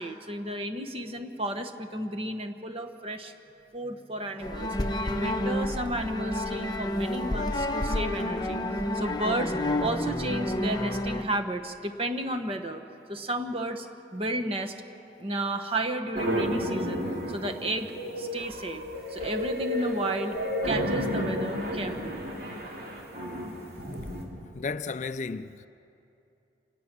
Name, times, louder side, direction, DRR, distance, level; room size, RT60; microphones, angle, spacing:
voice 1, 0.0-3.3 3.7-4.8 5.0-8.6 8.9-9.5 9.8-13.9 14.1-14.7 15.2-17.9 18.2-18.8 19.1-20.4 20.6-22.2, right 1 dB, 30° right, 1.2 m, -32 dB
sound 1, 4.4-11.2, left 1 dB, 25° left, 1.0 m, -29 dB
sound 2, 16.1-24.2, equal, 55° right, 3.2 m, -32 dB
voice 2, 24.5-25.7, left 4 dB, 40° left, 0.4 m, -33 dB
28.5 x 19.0 x 6.1 m
head